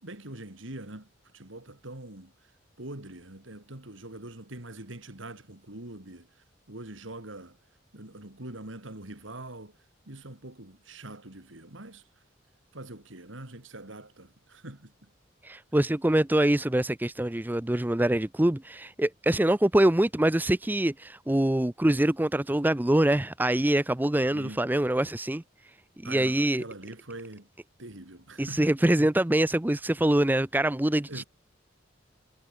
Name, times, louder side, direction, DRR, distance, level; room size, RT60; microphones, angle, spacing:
voice 1, 0.0-2.3 2.8-7.6 7.9-9.7 10.1-12.0 12.7-15.1 24.3-24.6 26.0-27.5 27.8-28.7 31.1-31.2, right 1 dB, 80° right, 3.4 m, -43 dB
voice 2, 15.4-25.4 26.0-26.6 28.4-31.2, right 1 dB, 10° right, 0.5 m, -24 dB
head